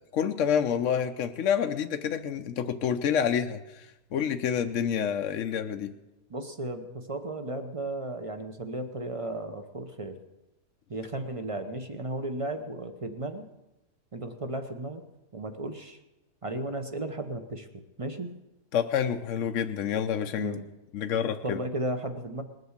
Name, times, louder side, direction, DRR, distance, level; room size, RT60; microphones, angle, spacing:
voice 1, 0.1-5.9 18.7-20.6 20.9-21.6, left 8 dB, 60° left, 6 dB, 0.8 m, -28 dB
voice 2, 6.3-10.2 10.9-13.5 14.1-15.0 15.3-16.0 16.4-18.3 20.4-20.7 21.4-22.4, right 1 dB, 30° right, 7 dB, 0.6 m, -35 dB
20.0 x 7.9 x 7.2 m, 0.99 s
omnidirectional pair, 1.8 m